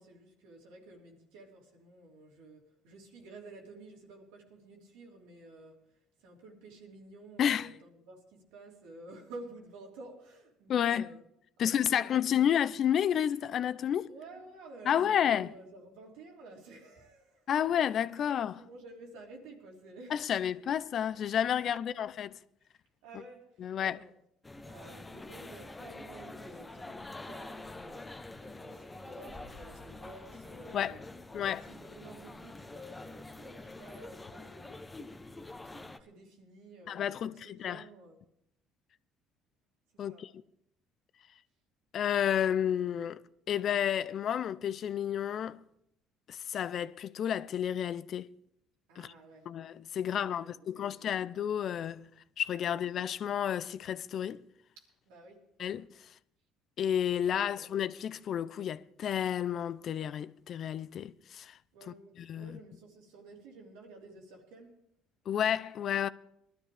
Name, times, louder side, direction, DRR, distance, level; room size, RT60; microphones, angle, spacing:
voice 1, 0.0-5.9 6.2-11.2 11.6-12.8 14.1-17.5 18.1-20.3 23.0-24.1 24.6-31.0 31.3-38.2 39.9-40.3 48.9-49.5 50.0-51.1 54.8-55.5 57.4-57.7 61.7-64.8, right 2 dB, 85° right, 3.1 m, -52 dB
voice 2, 7.4-7.7 10.7-11.1 11.6-14.1 14.8-15.5 17.5-18.6 20.1-22.3 23.6-24.0 30.7-31.0 31.3-31.6 36.9-37.8 40.0-40.3 41.9-43.2 43.5-45.6 46.3-48.3 49.0-49.1 49.5-52.1 52.4-54.4 55.6-55.9 56.8-61.6 61.9-62.6 65.3-66.1, left 9 dB, 55° left, 0.5 m, -31 dB
sound 1, 24.4-36.0, left 2 dB, 15° left, 0.9 m, -46 dB
20.0 x 12.0 x 3.4 m
supercardioid pair, 90°, 0 cm